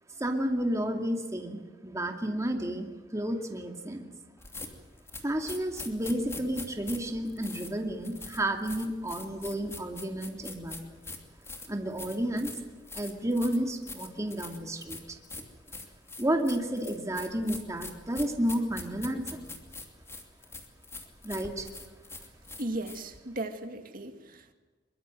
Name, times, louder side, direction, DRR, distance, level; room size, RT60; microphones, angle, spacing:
voice 1, 0.2-4.1 5.2-11.0 11.7-12.5 12.9-15.2 16.2-19.4 21.2-21.7, right 1 dB, 20° right, 3 dB, 2.4 m, -31 dB
sound 1, 4.4-23.2, left 3 dB, 15° left, 2.7 m, -44 dB
voice 2, 22.6-24.5, right 2 dB, 50° right, 6 dB, 2.2 m, -36 dB
23.0 x 23.0 x 7.8 m, 1.3 s
head